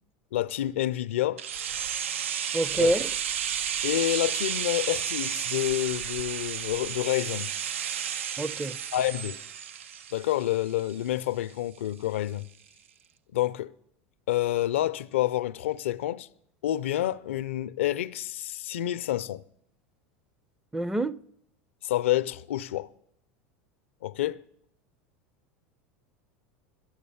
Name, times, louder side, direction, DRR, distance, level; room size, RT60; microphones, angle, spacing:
voice 1, 0.3-1.4 2.8-3.0 3.8-7.5 8.9-9.4 10.1-12.5 13.3-13.7 14.3-16.3 16.6-19.4 21.8-22.9 24.0-24.4, left 13 dB, 85° left, 0.4 m, -28 dB
sound 1, 1.4-11.2 11.5-11.6, right 9 dB, 90° right, 0.4 m, -32 dB
voice 2, 2.5-3.1 8.4-8.8 20.7-21.2, right 1 dB, 10° right, 0.4 m, -26 dB
13.0 x 8.5 x 7.0 m
hypercardioid pair, 100°, 7 cm